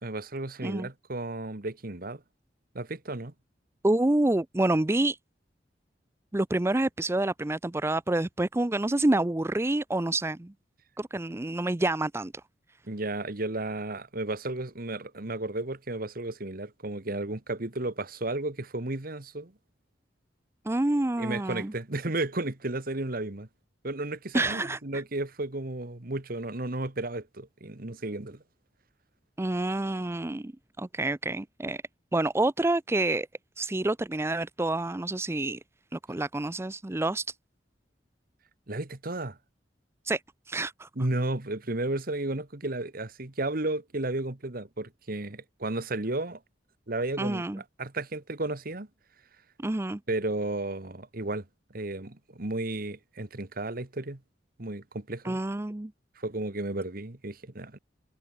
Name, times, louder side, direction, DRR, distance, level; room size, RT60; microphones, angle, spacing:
voice 1, 0.0-2.2 2.7-3.3 12.9-19.5 21.2-23.5 23.8-28.4 38.7-39.4 41.0-46.4 46.9-47.4 47.8-48.9 50.1-51.4 51.7-54.2 54.6-55.4 56.2-57.8, right 2 dB, 55° right, 1.7 m, -33 dB
voice 2, 3.8-5.2 6.3-10.5 11.0-12.3 20.7-21.7 24.3-25.0 29.4-30.5 30.8-31.8 32.1-33.3 33.6-35.6 35.9-37.3 40.0-40.2 40.5-40.9 47.2-47.6 49.6-50.0 55.2-55.9, right 2 dB, 15° right, 0.5 m, -28 dB
head